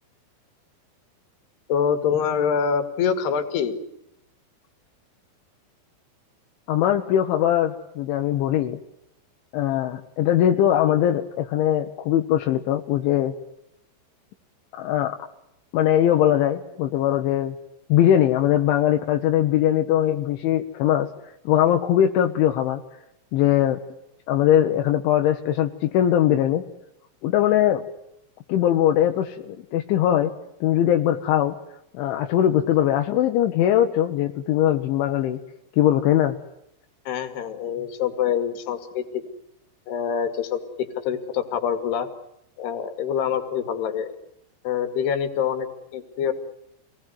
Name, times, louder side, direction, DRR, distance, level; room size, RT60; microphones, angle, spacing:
voice 1, 1.7-3.8 37.1-39.2 39.9-42.1 42.6-44.1 44.6-45.7 45.9-46.3, left 7 dB, 60° left, 9 dB, 4.0 m, -25 dB
voice 2, 6.7-8.8 9.5-13.4 14.8-15.2 15.7-17.6 17.9-21.1 21.5-22.8 23.3-23.8 24.3-26.6 27.2-27.8 28.5-30.3 30.6-31.6 31.9-35.4 35.8-36.4, left 11 dB, 75° left, 5 dB, 3.6 m, -21 dB
27.5 x 20.0 x 9.5 m, 0.81 s
omnidirectional pair, 5.5 m